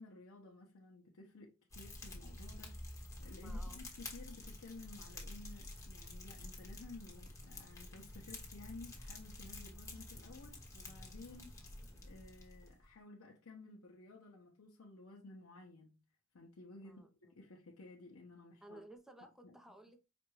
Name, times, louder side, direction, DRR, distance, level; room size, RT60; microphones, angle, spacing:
voice 1, 0.0-11.5 12.0-16.0 16.3-17.0 17.4-18.8 19.4-19.5, left 3 dB, 80° left, 0.7 m, -55 dB
Fire, 1.7-12.9, left 1 dB, 15° left, 1.0 m, -49 dB
voice 2, 3.4-3.8 16.8-17.3 18.6-20.0, right 1 dB, ahead, 0.6 m, -57 dB
5.0 x 2.2 x 3.1 m
head